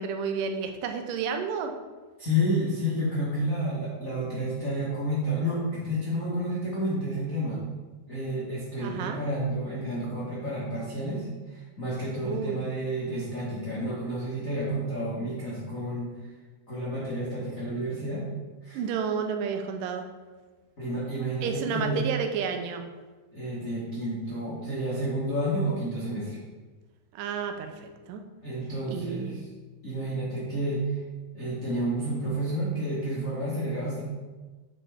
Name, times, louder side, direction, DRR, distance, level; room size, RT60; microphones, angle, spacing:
voice 1, 0.0-1.7 8.8-9.2 12.2-12.6 18.7-20.1 21.4-22.9 27.1-28.2 28.9-29.4, right 6 dB, 85° right, 5 dB, 2.2 m, -31 dB
voice 2, 2.2-7.6 8.1-16.1 16.7-18.2 18.6-18.8 20.8-22.0 23.3-26.4 28.4-29.4 29.8-31.0 31.3-34.0, equal, 60° left, -8 dB, 0.8 m, -30 dB
8.4 x 4.4 x 3.4 m, 1.3 s
omnidirectional pair, 3.8 m